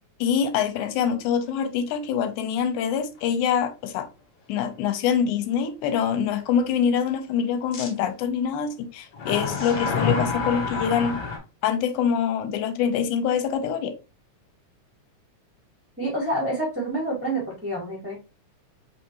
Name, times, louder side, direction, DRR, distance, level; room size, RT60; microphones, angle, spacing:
voice 1, 0.2-4.1 4.5-11.2 11.6-13.9, left 7 dB, 85° left, 2.1 m, -25 dB
sound 1, 2.4-2.6 3.2-3.3 7.7-7.9 9.1-11.4, left 4 dB, 70° left, 1.0 m, -27 dB
voice 2, 16.0-18.2, right 1 dB, 15° right, 0.5 m, -28 dB
4.4 x 3.4 x 2.8 m
omnidirectional pair, 3.5 m